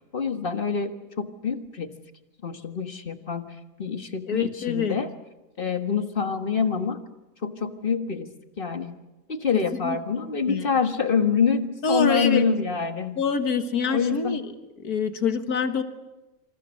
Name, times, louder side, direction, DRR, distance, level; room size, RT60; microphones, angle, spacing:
voice 1, 0.1-1.9 2.4-5.1 5.6-7.0 7.4-8.3 8.6-9.0 9.3-13.2 13.9-14.4, left 5 dB, 40° left, 7 dB, 1.7 m, -26 dB
voice 2, 4.3-5.0 9.8-10.0 10.5-10.7 11.8-12.5 13.2-14.4 14.8-15.8, left 5 dB, 85° left, 8 dB, 2.1 m, -25 dB
27.5 x 27.0 x 6.5 m, 1.0 s
omnidirectional pair, 1.6 m